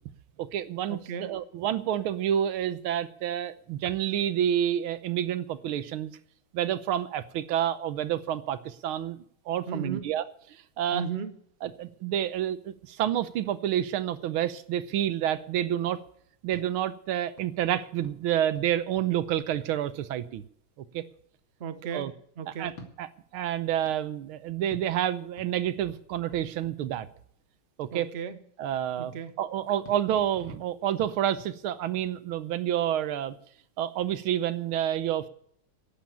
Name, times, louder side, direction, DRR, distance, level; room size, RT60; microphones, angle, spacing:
voice 1, 0.4-6.1 6.5-9.2 9.5-10.2 10.8-11.0 11.6-16.0 16.4-20.4 20.9-21.0 21.9-22.1 22.6-22.7 23.0-23.1 23.3-27.1 27.8-28.1 28.6-29.1 29.4-33.3 33.8-35.3, right 11 dB, 85° right, 13 dB, 1.6 m, -29 dB
voice 2, 0.9-1.3 9.7-10.0 10.9-11.3 21.6-22.7 27.9-28.4 29.0-29.3, right 6 dB, 45° right, 10 dB, 0.9 m, -35 dB
sound 1, 16.4-20.3 22.6-27.5 29.8-32.3, left 1 dB, 70° left, 3.0 m, -52 dB
11.5 x 8.8 x 8.7 m, 0.64 s
omnidirectional pair, 2.3 m